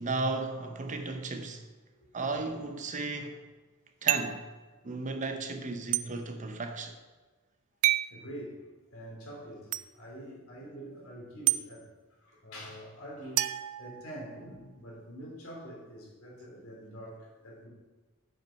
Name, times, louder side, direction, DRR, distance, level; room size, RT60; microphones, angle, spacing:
voice 1, 0.0-1.6 2.1-3.4 4.0-4.5 4.8-7.0, right 3 dB, 35° right, 0.7 m, -34 dB
sound 1, 4.1-4.5 5.9-6.1 7.8-8.1 9.7-9.8 11.5-11.6 13.4-14.4, right 16 dB, 75° right, 0.3 m, -28 dB
voice 2, 8.1-8.7 8.9-11.9 12.2-17.7, equal, 70° left, 3.0 m, -45 dB
7.3 x 5.7 x 5.6 m
head